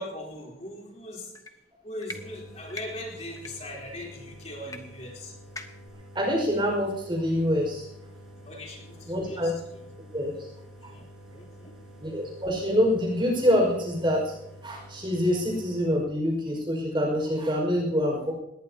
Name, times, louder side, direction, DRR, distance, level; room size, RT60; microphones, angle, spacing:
voice 1, 0.0-1.3 1.8-5.3 8.4-9.6 10.9-11.8, left 1 dB, 40° left, -2 dB, 3.7 m, -40 dB
sound 1, 1.4-1.5 2.0-2.2 2.7-2.9 3.4-3.5 4.7-4.8 5.1-5.2 5.6-5.9, left 2 dB, 20° left, 1.3 m, -39 dB
sound 2, 2.1-16.0, equal, 5° right, 5.4 m, -48 dB
voice 2, 6.1-7.9 9.1-9.5 10.1-10.5 10.8-10.9 12.0-14.3 14.6-18.3, equal, 25° right, 1 dB, 5.4 m, -26 dB
19.5 x 18.5 x 2.9 m, 0.89 s
head